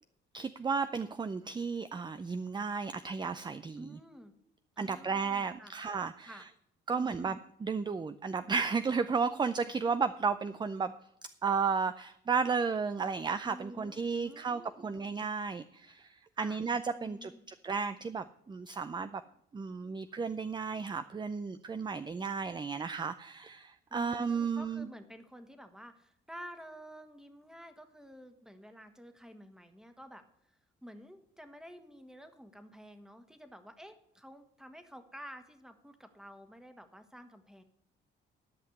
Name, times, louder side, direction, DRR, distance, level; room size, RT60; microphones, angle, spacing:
voice 1, 0.3-4.0 4.8-6.4 6.9-10.9 11.4-19.2 19.5-24.9, right 5 dB, 20° right, 12 dB, 0.5 m, -33 dB
voice 2, 3.8-4.3 4.8-5.7 6.2-6.5 6.9-7.3 13.4-15.0 16.4-16.6 16.9-17.4 23.9-37.6, equal, 5° right, 7 dB, 1.5 m, -51 dB
12.5 x 5.8 x 8.1 m, 0.76 s
cardioid pair, 90°, 20 cm